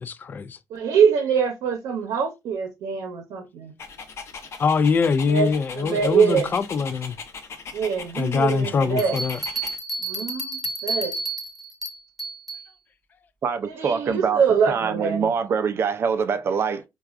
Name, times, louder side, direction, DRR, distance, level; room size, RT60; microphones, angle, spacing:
voice 1, 0.0-0.6 4.6-7.2 8.2-9.4, left 5 dB, 30° left, 0.3 m, -23 dB
voice 2, 0.7-3.7 5.3-6.5 7.7-9.2 10.0-11.2 13.6-15.3, right 6 dB, 75° right, 0.7 m, -24 dB
Dog, 3.8-9.8, left 5 dB, 45° left, 0.7 m, -39 dB
Bell, 9.0-12.7, right 2 dB, 5° right, 1.0 m, -31 dB
voice 3, 13.4-16.8, right 6 dB, 40° right, 0.4 m, -24 dB
4.5 x 2.3 x 2.4 m
cardioid pair, 145°, 6 cm